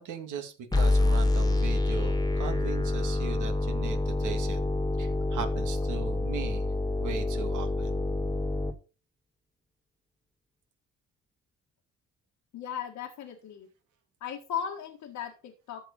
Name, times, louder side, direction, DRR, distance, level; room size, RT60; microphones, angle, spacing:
voice 1, 0.0-4.6 5.0-6.7 7.0-7.9, right 6 dB, 80° right, 4 dB, 2.5 m, -38 dB
sound 1, 0.7-8.7, left 2 dB, 15° left, 1.7 m, -27 dB
voice 2, 12.5-13.7 14.2-15.9, left 8 dB, 80° left, 1 dB, 1.9 m, -37 dB
14.0 x 4.9 x 5.4 m, 0.34 s
cardioid pair, 90°, 30 cm